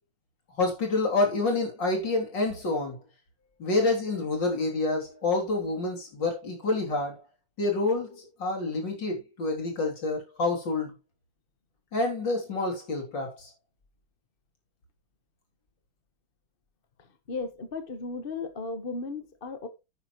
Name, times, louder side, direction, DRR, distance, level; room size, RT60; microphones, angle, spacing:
voice 1, 0.6-3.0 3.6-7.2 7.6-10.9 11.9-13.5, left 2 dB, 65° left, 3.9 m, -28 dB
voice 2, 17.3-19.7, left 3 dB, 30° left, 1.2 m, -35 dB
10.0 x 9.8 x 3.1 m
omnidirectional pair, 2.2 m